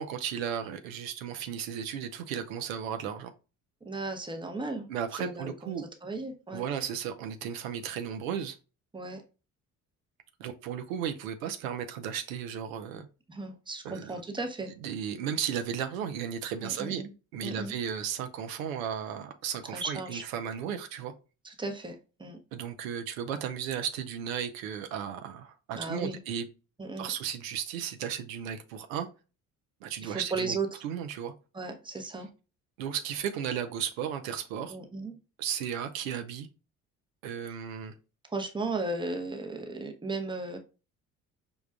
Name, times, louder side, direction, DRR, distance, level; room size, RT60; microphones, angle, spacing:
voice 1, 0.0-3.3 4.9-5.8 6.5-8.6 10.4-13.1 13.8-14.2 14.8-17.1 17.3-21.1 22.5-26.4 27.0-29.1 29.8-30.6 30.8-31.3 32.8-34.8 35.4-36.5 37.2-37.9, right 8 dB, 70° right, 0.6 m, -35 dB
voice 2, 3.8-4.9 5.2-6.6 8.9-9.2 13.3-14.7 16.6-17.1 17.4-17.7 19.7-20.2 21.4-22.4 25.7-26.2 26.8-27.1 30.0-30.8 31.5-32.3 34.7-35.2 38.3-40.6, right 3 dB, 10° right, 0.8 m, -35 dB
5.2 x 2.3 x 2.2 m
figure-of-eight pair, 50°, 42 cm